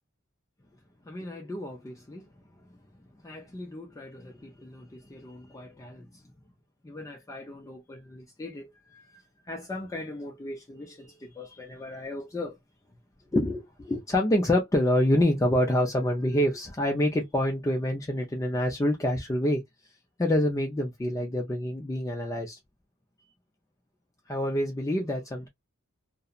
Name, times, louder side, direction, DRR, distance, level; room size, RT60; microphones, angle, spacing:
voice 1, 1.1-2.2 3.2-6.1 6.8-9.2 9.5-12.6 13.3-19.6 20.2-22.6 24.3-25.5, left 1 dB, 15° left, 0.4 m, -28 dB
2.6 x 2.0 x 2.3 m
head